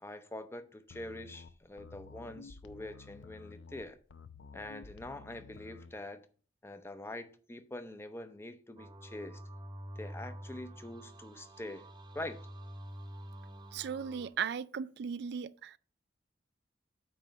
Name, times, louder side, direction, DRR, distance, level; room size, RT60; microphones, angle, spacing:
voice 1, 0.0-4.0 4.5-6.3 6.6-9.4 10.0-11.9 12.1-12.4, left 1 dB, 15° left, 0.6 m, -44 dB
sound 1, 0.9-5.9, left 4 dB, 90° left, 0.6 m, -52 dB
sound 2, 8.8-14.3, equal, 25° right, 0.9 m, -47 dB
voice 2, 13.7-15.8, right 7 dB, 60° right, 0.4 m, -37 dB
8.9 x 3.1 x 5.7 m
head